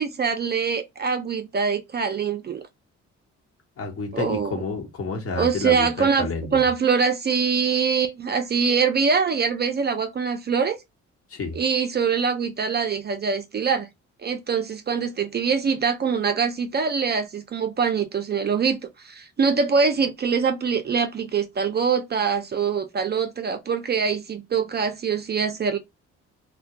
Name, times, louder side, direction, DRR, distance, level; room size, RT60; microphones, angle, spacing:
voice 1, 0.0-2.7 4.1-4.6 5.4-10.8 11.5-13.9 14.2-25.8, right 6 dB, 35° right, 0.4 m, -24 dB
voice 2, 3.8-6.6 11.3-11.6, left 4 dB, 50° left, 1.0 m, -30 dB
2.3 x 2.1 x 2.7 m
cardioid pair, 90°, 30 cm